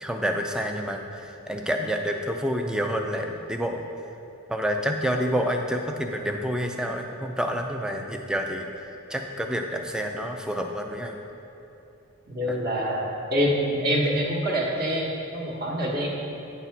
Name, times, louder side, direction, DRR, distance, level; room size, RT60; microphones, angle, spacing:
voice 1, 0.0-3.8 4.5-8.7 9.1-11.2 12.5-12.6, equal, 5° right, 3 dB, 0.4 m, -28 dB
voice 2, 12.3-16.1, equal, 40° right, -3 dB, 1.2 m, -26 dB
9.1 x 4.2 x 5.8 m, 2.9 s
head